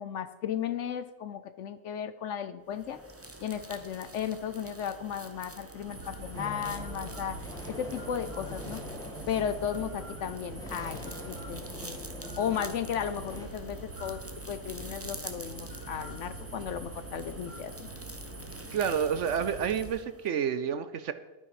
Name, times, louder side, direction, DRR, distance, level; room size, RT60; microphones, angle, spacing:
voice 1, 0.0-3.0 3.4-8.8 9.3-12.0 12.4-14.2 14.5-17.9, left 8 dB, 65° left, 12 dB, 0.8 m, -35 dB
sound 1, 2.7-20.5, right 2 dB, 15° right, 0.6 m, -47 dB
sound 2, 5.8-19.9, right 1 dB, 85° right, 3.5 m, -44 dB
sound 3, 6.3-13.5, left 1 dB, 5° left, 1.4 m, -45 dB
voice 2, 18.7-21.1, right 7 dB, 65° right, 12 dB, 0.9 m, -29 dB
11.5 x 9.5 x 4.8 m, 1.1 s
omnidirectional pair, 1.5 m